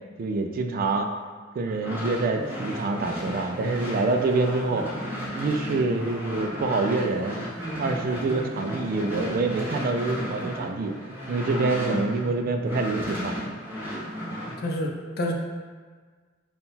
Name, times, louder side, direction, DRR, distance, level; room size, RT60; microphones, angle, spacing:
voice 1, 0.2-1.1 1.6-4.9 5.3-7.4 7.8-10.9 11.3-13.3, right 3 dB, 45° right, 5 dB, 0.3 m, -26 dB
sound 1, 1.7-12.3 12.6-14.6, equal, 10° right, 0.8 m, -34 dB
voice 2, 14.6-15.3, left 1 dB, 50° left, 2 dB, 0.5 m, -28 dB
3.7 x 2.2 x 4.1 m, 1.5 s
head